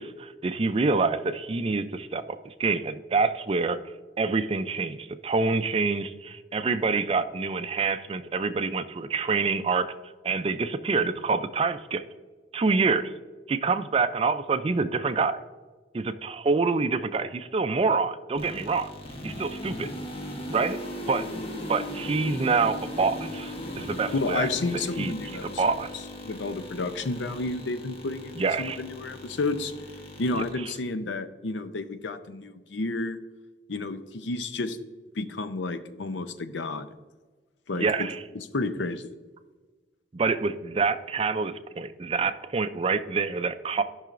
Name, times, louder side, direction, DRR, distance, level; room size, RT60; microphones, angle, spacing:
voice 1, 0.0-3.8 4.2-9.9 10.2-12.0 12.5-13.1 13.5-15.4 15.9-18.9 19.2-19.9 20.5-20.8 21.1-21.2 21.7-24.5 24.7-25.1 25.4-25.9 28.4-28.8 30.3-30.4 37.7-38.2 40.1-43.8, right 4 dB, 30° right, 11 dB, 0.4 m, -26 dB
sound 1, 18.4-30.5, left 1 dB, 30° left, 1.0 m, -38 dB
voice 2, 24.1-25.6 26.2-29.7 30.2-33.2 33.7-34.8 35.1-36.9 37.7-37.8 38.3-39.1, left 3 dB, 80° left, 10 dB, 0.6 m, -31 dB
14.0 x 5.6 x 2.5 m, 1.3 s
head